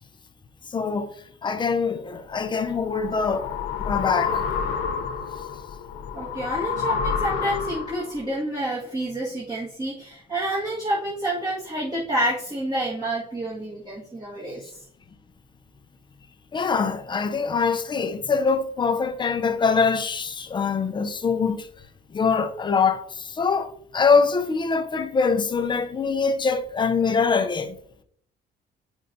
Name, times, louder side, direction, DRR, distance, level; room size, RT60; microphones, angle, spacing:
voice 1, 0.7-1.1 1.4-3.5 3.8-4.4 16.5-21.7 22.1-27.8, left 5 dB, 25° left, 0.6 m, -23 dB
sound 1, 2.4-8.2, left 7 dB, 90° left, 0.7 m, -29 dB
voice 2, 6.1-14.7, right 1 dB, 25° right, 1.8 m, -28 dB
8.9 x 5.4 x 2.7 m
cardioid pair, 110°, 17 cm